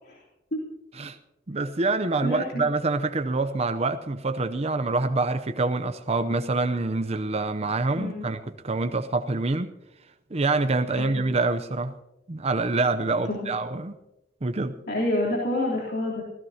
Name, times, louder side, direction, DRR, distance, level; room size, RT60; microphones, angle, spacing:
voice 1, 1.5-9.7 10.3-11.9 12.3-13.9 14.4-14.7, right 3 dB, 35° right, 8 dB, 0.6 m, -26 dB
voice 2, 2.2-2.6 8.0-8.3 10.9-11.2 13.2-13.5 14.9-16.2, left 1 dB, 65° left, -5 dB, 3.3 m, -28 dB
26.0 x 16.0 x 2.8 m, 0.94 s
head